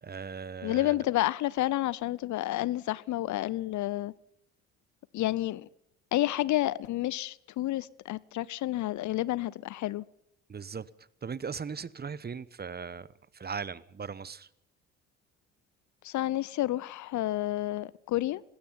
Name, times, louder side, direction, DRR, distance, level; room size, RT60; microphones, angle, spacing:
voice 1, 0.0-0.9 10.5-13.1 13.3-14.5, right 6 dB, 25° right, 1.1 m, -38 dB
voice 2, 0.6-4.1 5.1-5.7 6.1-10.1 16.0-18.4, left 15 dB, 55° left, 0.8 m, -30 dB
26.0 x 20.0 x 5.6 m
hypercardioid pair, 50°, 36 cm